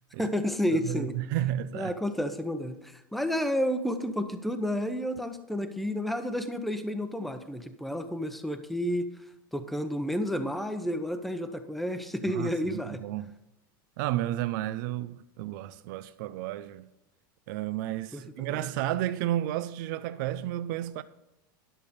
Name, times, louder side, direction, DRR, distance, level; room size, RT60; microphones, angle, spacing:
voice 1, 0.2-1.1 1.7-9.1 9.5-13.0 18.1-18.2 18.5-18.6, equal, ahead, 0.8 m, -31 dB
voice 2, 0.7-1.9 12.3-13.3 14.0-16.9 17.5-21.0, right 13 dB, 65° right, 0.5 m, -32 dB
11.0 x 6.6 x 5.2 m
supercardioid pair, 130°, 11 cm